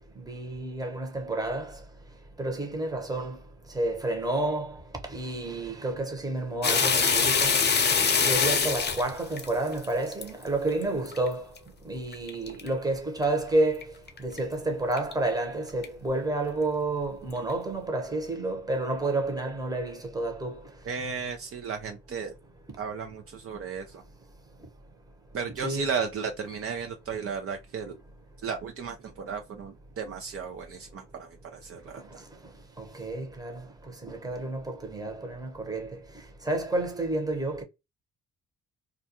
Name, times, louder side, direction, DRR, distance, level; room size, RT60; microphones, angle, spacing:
voice 1, 0.2-1.7 2.4-3.4 3.7-4.8 5.1-7.6 8.2-11.4 11.8-13.8 14.2-20.6 25.6-25.9 32.9-33.6 34.0-36.0 36.5-37.6, right 2 dB, 10° right, 0.9 m, -30 dB
sound 1, 6.6-10.3 10.8-11.2 11.6-11.7 12.1-12.7 13.2-13.3 13.8-13.9 14.1-14.4 15.0-15.1 15.8-15.9, left 5 dB, 35° left, 0.6 m, -24 dB
voice 2, 20.9-22.3 22.8-24.0 25.3-28.0 28.4-32.2, right 6 dB, 50° right, 0.5 m, -34 dB
2.4 x 2.2 x 2.8 m
cardioid pair, 90°, 30 cm